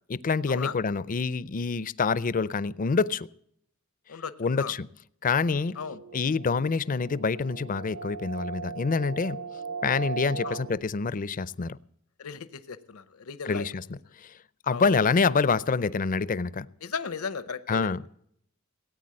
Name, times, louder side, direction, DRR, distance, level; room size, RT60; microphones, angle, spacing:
voice 1, 0.1-3.3 4.4-4.9 5.2-5.8 6.1-9.4 9.8-11.8 13.4-14.3 14.6-16.7 17.7-18.0, left 4 dB, 40° left, 0.5 m, -26 dB
voice 2, 4.1-4.7 5.8-6.0 10.4-10.6 12.2-13.7 14.7-14.9 16.8-18.0, left 5 dB, 85° left, 0.9 m, -36 dB
sound 1, 5.5-10.8, right 5 dB, 65° right, 1.1 m, -38 dB
17.5 x 9.1 x 7.7 m
head